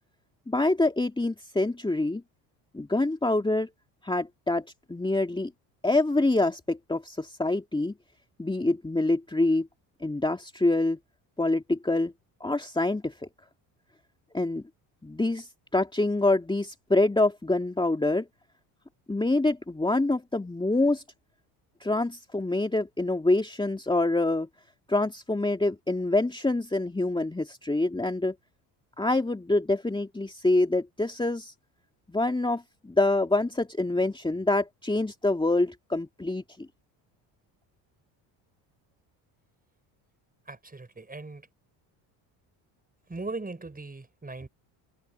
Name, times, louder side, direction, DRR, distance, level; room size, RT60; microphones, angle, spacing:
voice 1, 0.5-2.2 2.7-3.7 4.0-5.5 5.8-7.9 8.4-9.7 10.0-11.0 11.4-12.1 12.4-13.1 14.3-14.6 15.0-18.3 19.1-21.0 21.8-24.5 24.9-28.3 29.0-31.5 32.1-36.4, left 2 dB, 10° left, 2.4 m, -26 dB
voice 2, 40.5-41.5 43.1-44.5, right 3 dB, 15° right, 5.7 m, -39 dB
supercardioid pair, 70°, 50 cm